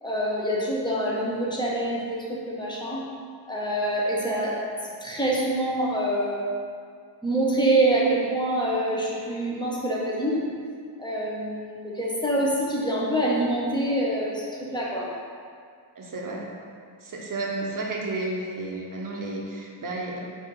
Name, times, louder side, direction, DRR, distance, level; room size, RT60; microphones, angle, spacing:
voice 1, 0.0-2.2 2.4-3.0 3.5-4.6 5.0-6.4 7.2-10.4 11.0-14.4 14.7-15.1, right 1 dB, 10° left, -5 dB, 0.8 m, -25 dB
voice 2, 16.0-16.5 17.0-20.2, right 2 dB, 45° right, -1 dB, 0.7 m, -32 dB
4.3 x 2.7 x 3.7 m, 2.2 s
wide cardioid pair, 95°, 47 cm